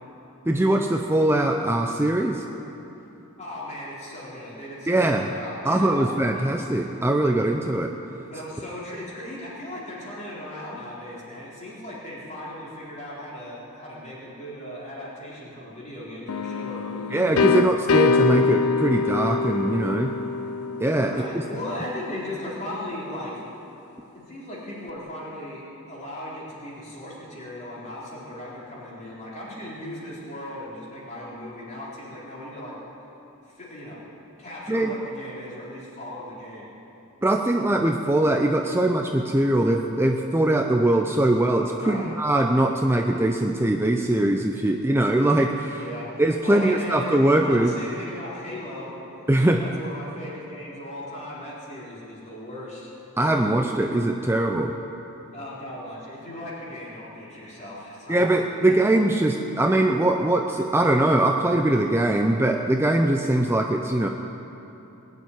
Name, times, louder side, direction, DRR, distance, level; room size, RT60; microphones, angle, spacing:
voice 1, 0.5-2.4 4.9-5.3 5.6-7.9 17.1-20.1 20.8-21.2 34.7-34.9 37.2-45.8 46.2-47.7 49.3-49.6 53.2-54.7 58.1-64.1, right 1 dB, 10° right, 3 dB, 0.6 m, -22 dB
voice 2, 3.4-6.5 8.3-17.2 21.1-23.4 24.1-32.8 33.5-34.0 34.4-36.7 41.8-42.1 45.8-46.1 46.4-48.9 49.6-52.9 55.3-58.8, left 1 dB, 35° left, -6 dB, 4.2 m, -37 dB
sound 1, 16.3-22.0, left 4 dB, 80° left, 0.5 m, -24 dB
20.0 x 7.3 x 9.4 m, 3.0 s
head